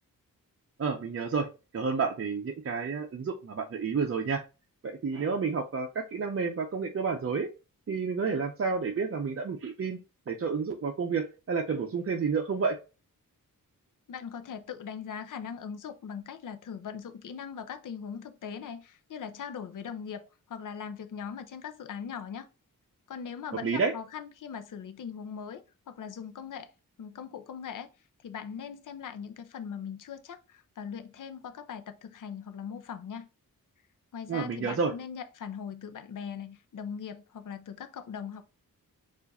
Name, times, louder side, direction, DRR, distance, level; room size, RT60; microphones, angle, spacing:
voice 1, 0.8-1.5 1.7-4.4 4.8-7.5 7.9-10.0 10.3-12.8 23.6-23.9 34.3-34.9, right 5 dB, 40° right, 0.5 m, -30 dB
voice 2, 14.1-22.5 23.1-26.7 27.0-27.9 28.2-33.3 34.1-38.4, left 7 dB, 65° left, 0.6 m, -40 dB
4.6 x 2.5 x 4.0 m
wide cardioid pair, 110°, 35 cm